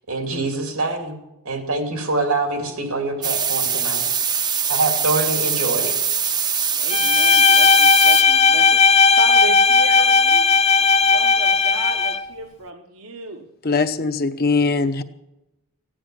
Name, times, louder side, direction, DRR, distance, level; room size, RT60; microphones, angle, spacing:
voice 1, 0.1-1.2 1.4-4.1 4.7-5.9, right 2 dB, 90° right, 4 dB, 2.8 m, -24 dB
sound 1, 3.2-8.2, right 7 dB, 20° right, 0.6 m, -22 dB
voice 2, 6.7-10.5 11.0-13.5, right 4 dB, 70° right, 4 dB, 1.1 m, -34 dB
Bowed string instrument, 6.9-12.3, left 5 dB, 30° left, 0.4 m, -15 dB
voice 3, 13.6-15.0, left 4 dB, 45° left, 9 dB, 0.8 m, -21 dB
15.5 x 10.0 x 7.7 m, 0.94 s
head